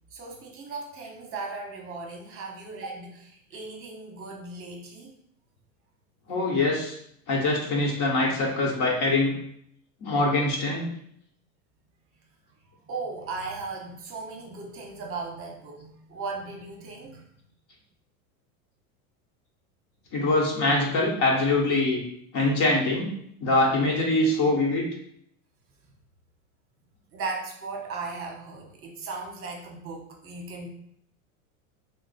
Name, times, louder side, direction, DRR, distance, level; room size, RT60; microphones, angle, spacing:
voice 1, 0.1-5.2 12.8-17.3 27.1-30.7, right 3 dB, 30° right, 1 dB, 0.9 m, -37 dB
voice 2, 6.3-7.0 7.3-9.3 10.0-10.9 20.1-22.0 22.3-23.1 23.4-24.8, left 2 dB, 45° left, -2 dB, 1.0 m, -23 dB
2.8 x 2.0 x 4.0 m, 0.69 s
supercardioid pair, 110°, 43 cm